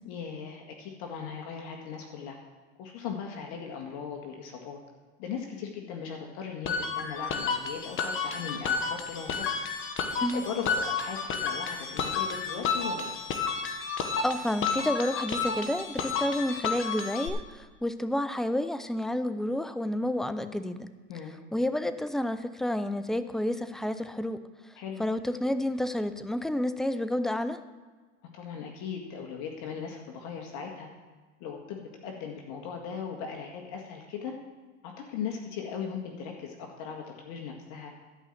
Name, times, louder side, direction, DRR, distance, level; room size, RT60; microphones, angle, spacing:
voice 1, 0.0-2.4 2.8-4.8 5.2-9.5 10.2-13.1 21.1-21.4 24.8-25.0 28.3-30.9 31.4-34.3 34.8-37.9, left 6 dB, 55° left, 1 dB, 1.9 m, -38 dB
sound 1, 6.6-17.3, left 5 dB, 35° left, 1.5 m, -31 dB
voice 2, 14.2-20.9 21.5-24.4 25.0-27.6, left 1 dB, ahead, 11 dB, 0.4 m, -30 dB
12.5 x 5.6 x 7.9 m, 1.3 s
supercardioid pair, 110°, 35 cm